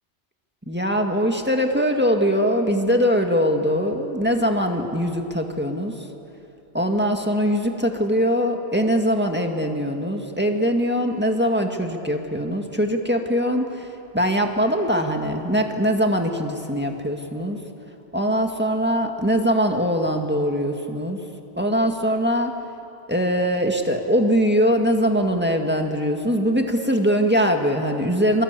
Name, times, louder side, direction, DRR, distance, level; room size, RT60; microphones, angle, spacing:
voice 1, 0.7-5.9 6.7-13.9 14.1-17.6 18.1-21.2 21.6-22.5 23.1-28.4, equal, 10° right, 3 dB, 1.9 m, -22 dB
28.5 x 23.5 x 8.4 m, 2.9 s
omnidirectional pair, 1.1 m